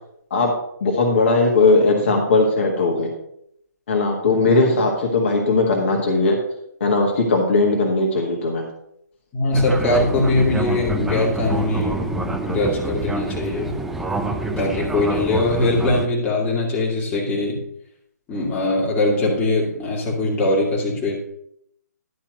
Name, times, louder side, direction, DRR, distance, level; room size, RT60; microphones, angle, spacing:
voice 1, 0.8-3.1 3.9-6.4 6.8-8.6, left 3 dB, 40° left, 0 dB, 1.6 m, -18 dB
voice 2, 9.3-13.7 14.5-17.6 18.3-21.1, left 2 dB, 15° left, -4 dB, 2.0 m, -21 dB
Fixed-wing aircraft airplane, 9.5-16.1, right 2 dB, ahead, 0.3 m, -27 dB
11.0 x 4.4 x 6.4 m, 0.74 s
figure-of-eight pair, 140°, 10 cm